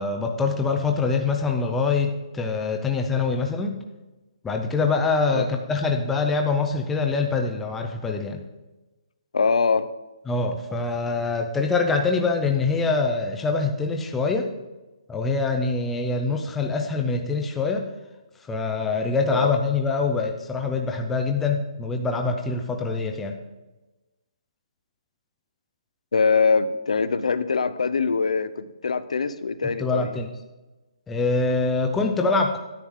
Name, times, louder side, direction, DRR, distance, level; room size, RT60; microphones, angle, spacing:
voice 1, 0.0-3.8 4.4-8.4 10.3-14.5 15.1-17.9 18.4-23.4 29.6-30.3 31.1-32.6, left 4 dB, 5° left, 3 dB, 0.4 m, -24 dB
voice 2, 9.3-9.9 19.3-19.5 26.1-30.2, left 5 dB, 85° left, 13 dB, 0.7 m, -23 dB
10.5 x 8.5 x 3.7 m, 1.1 s
hypercardioid pair, 180°, 3 cm